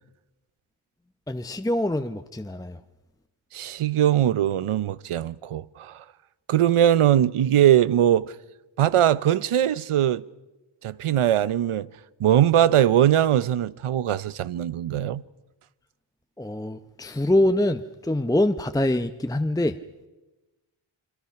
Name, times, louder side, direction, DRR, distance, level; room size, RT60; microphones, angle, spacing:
voice 1, 1.3-2.8 16.4-19.8, left 1 dB, 5° left, 0.8 m, -24 dB
voice 2, 3.5-6.0 6.5-8.3 8.8-10.2 10.8-11.9 12.2-15.2, right 11 dB, 90° right, 0.8 m, -21 dB
29.0 x 23.5 x 5.8 m
wide cardioid pair, 85°, 49 cm